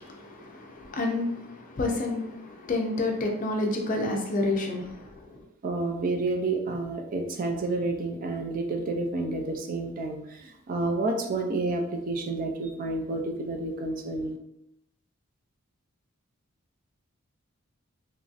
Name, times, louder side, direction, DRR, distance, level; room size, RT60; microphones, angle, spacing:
voice 1, 0.0-5.4, left 2 dB, 40° left, 0.5 m, -29 dB
voice 2, 5.6-14.4, right 2 dB, 40° right, 0.4 m, -30 dB
3.0 x 2.6 x 2.4 m
head